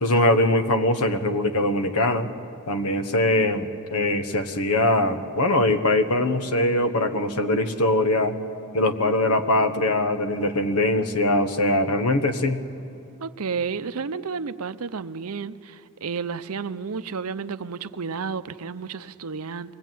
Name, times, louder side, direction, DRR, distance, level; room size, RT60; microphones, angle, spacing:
voice 1, 0.0-2.3 2.7-8.4 8.7-12.6, left 1 dB, 80° left, 1.3 m, -22 dB
voice 2, 13.2-19.7, right 5 dB, 75° right, 0.7 m, -31 dB
23.5 x 17.5 x 9.3 m
head